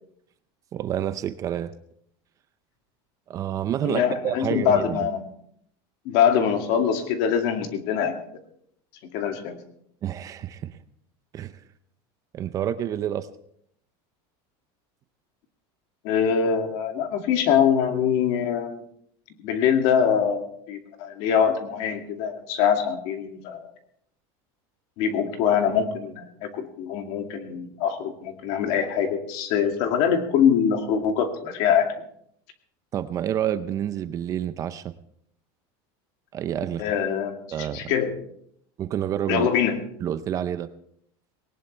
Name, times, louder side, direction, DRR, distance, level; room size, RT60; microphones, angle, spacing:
voice 1, 0.7-1.7 3.3-5.1 10.0-10.8 11.3-11.5 12.3-13.3 32.9-34.9 36.3-36.8 37.5-37.9 38.8-39.5 40.0-40.7, right 10 dB, 25° right, 12 dB, 0.6 m, -28 dB
voice 2, 3.8-5.3 6.1-8.1 9.1-9.6 16.0-18.8 19.4-23.7 25.0-31.9 36.8-38.1 39.3-39.8, left 8 dB, 55° left, 5 dB, 2.2 m, -23 dB
19.5 x 18.5 x 3.3 m, 0.68 s
cardioid pair, 170°, 13 cm